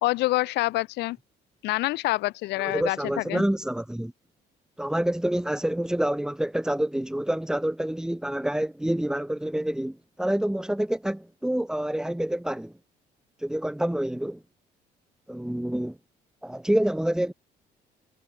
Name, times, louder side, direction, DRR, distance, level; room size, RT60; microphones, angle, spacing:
voice 1, 0.0-1.2 1.6-3.4, left 19 dB, 85° left, 1.4 m, -26 dB
voice 2, 2.6-4.1 4.8-12.7 13.4-14.4 15.3-16.0 16.4-17.3, right 1 dB, 5° right, 2.5 m, -27 dB
cardioid pair, 110°, 17 cm